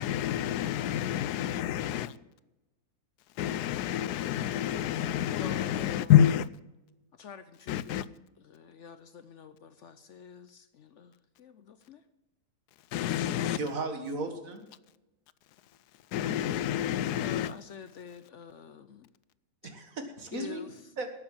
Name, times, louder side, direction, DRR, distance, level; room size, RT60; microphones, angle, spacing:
voice 1, 0.0-2.1 3.4-6.5 7.7-8.0 12.9-13.6 16.1-17.5, left 10 dB, 90° left, 17 dB, 1.2 m, -28 dB
voice 2, 5.3-6.1 7.2-8.2 8.4-11.1 11.4-12.0 16.4-16.7 17.2-19.1 20.3-20.8, left 7 dB, 60° left, 11 dB, 0.8 m, -46 dB
voice 3, 13.6-14.6 19.6-20.6 21.0-21.1, right 3 dB, 60° right, 6 dB, 2.0 m, -35 dB
12.0 x 8.0 x 7.4 m, 1.0 s
omnidirectional pair, 1.6 m